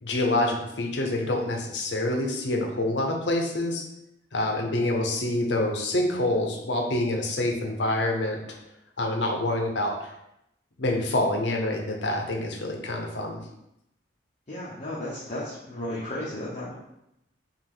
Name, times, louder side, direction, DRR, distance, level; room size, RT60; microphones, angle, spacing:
voice 1, 0.0-3.8 4.3-8.4 9.0-10.1 10.8-13.4, left 1 dB, 70° left, 1 dB, 0.7 m, -26 dB
voice 2, 14.5-16.7, left 1 dB, 40° left, -8 dB, 0.8 m, -34 dB
5.5 x 2.5 x 3.6 m, 0.83 s
head